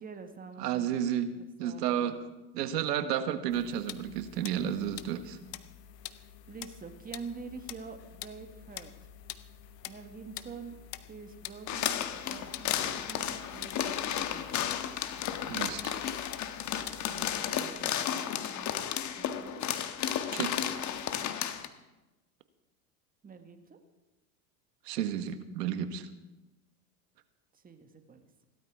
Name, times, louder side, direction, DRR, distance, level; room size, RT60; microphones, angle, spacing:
voice 1, 0.0-1.0 1.3-2.2 6.5-8.9 9.8-10.7 11.1-14.7 17.1-18.8 19.2-19.7 23.2-23.8 27.5-28.3, right 5 dB, 20° right, 6 dB, 1.6 m, -47 dB
voice 2, 0.6-1.3 1.6-2.1 2.5-5.4 15.5-16.0 20.3-20.5 24.8-26.1, right 10 dB, 75° right, 10 dB, 1.5 m, -32 dB
sound 1, 3.5-17.4, left 12 dB, 80° left, 1.0 m, -47 dB
sound 2, 11.7-21.7, left 10 dB, 35° left, 1.2 m, -33 dB
16.5 x 12.5 x 4.8 m, 1.1 s
hypercardioid pair, 95°, 48 cm